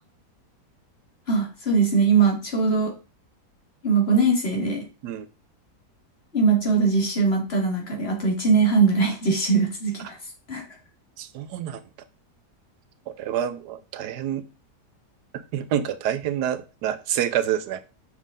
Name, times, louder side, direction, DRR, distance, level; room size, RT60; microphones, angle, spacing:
voice 1, 1.3-2.9 3.8-4.8 6.3-10.2 10.5-10.6, right 4 dB, 35° left, 2.1 m, -21 dB
voice 2, 11.2-11.8 13.1-14.5 15.3-17.8, right 10 dB, 80° right, 1.2 m, -27 dB
6.5 x 5.4 x 3.7 m
omnidirectional pair, 1.8 m